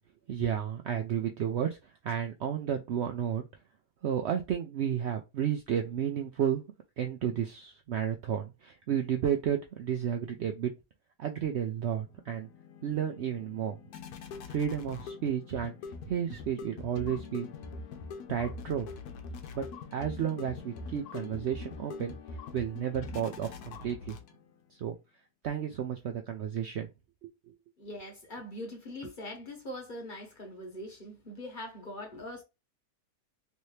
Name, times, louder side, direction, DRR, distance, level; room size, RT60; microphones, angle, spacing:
voice 1, 0.3-1.7 2.0-3.5 4.0-6.6 7.0-10.7 11.2-12.5 12.8-13.8 14.5-15.7 16.1-17.5 18.3-18.9 19.5-22.2 22.5-24.2 24.8-25.0 25.4-26.9 27.2-27.3, right 9 dB, 85° right, 0.6 m, -32 dB
sound 1, 11.8-24.6, left 4 dB, 75° left, 1.2 m, -44 dB
voice 2, 27.8-32.4, left 1 dB, 35° left, 1.1 m, -42 dB
3.2 x 2.7 x 3.1 m
omnidirectional pair, 1.7 m